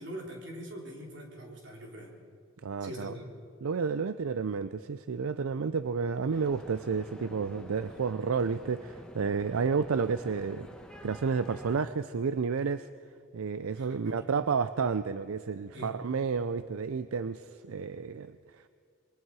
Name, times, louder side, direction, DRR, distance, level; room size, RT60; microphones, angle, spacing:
voice 1, 0.0-2.1 2.8-3.3 13.8-14.2 15.7-15.9, equal, 55° right, -1 dB, 3.9 m, -43 dB
voice 2, 2.6-3.1 3.6-10.7 11.0-12.9 13.3-18.7, right 5 dB, 80° right, 12 dB, 0.5 m, -31 dB
sound 1, 6.3-11.8, equal, 5° left, 1.3 m, -49 dB
27.5 x 21.5 x 4.8 m, 2.2 s
head